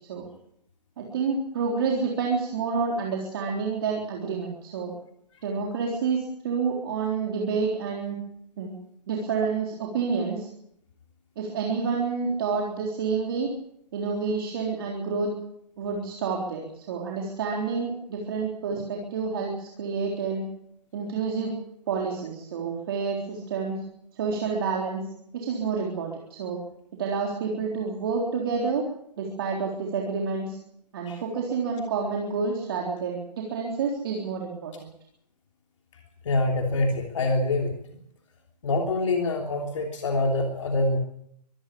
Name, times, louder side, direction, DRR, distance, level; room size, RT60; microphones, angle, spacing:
voice 1, 1.0-4.9 5.4-8.2 8.6-8.7 9.1-10.5 11.4-13.5 13.9-15.3 15.8-20.4 20.9-21.5 21.9-23.8 24.1-25.0 25.3-26.6 27.0-28.8 29.2-30.6 30.9-34.9, right 5 dB, 35° right, -1 dB, 3.8 m, -29 dB
voice 2, 36.2-37.7 38.6-41.0, left 2 dB, 50° left, 3 dB, 3.2 m, -25 dB
24.0 x 13.5 x 8.6 m, 0.72 s
hypercardioid pair, 165°, 21 cm